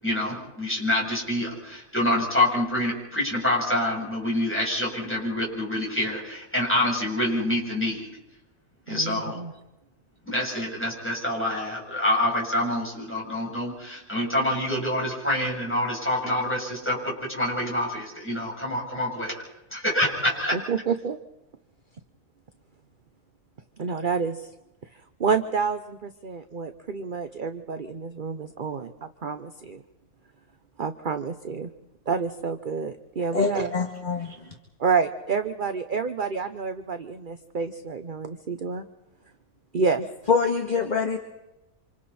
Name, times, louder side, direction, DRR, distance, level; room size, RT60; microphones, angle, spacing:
voice 1, 0.0-8.1 8.9-9.4 10.3-19.4 19.7-20.6, left 1 dB, 10° left, -4 dB, 7.8 m, -26 dB
voice 2, 8.9-9.5 20.5-21.2 23.8-24.5 25.2-29.8 30.8-31.7 32.1-33.7 34.8-38.8 39.7-40.1, right 5 dB, 40° right, 8 dB, 0.9 m, -28 dB
voice 3, 33.3-34.4 40.3-41.2, left 5 dB, 30° left, 1 dB, 2.0 m, -24 dB
28.0 x 27.0 x 4.3 m, 0.96 s
omnidirectional pair, 1.6 m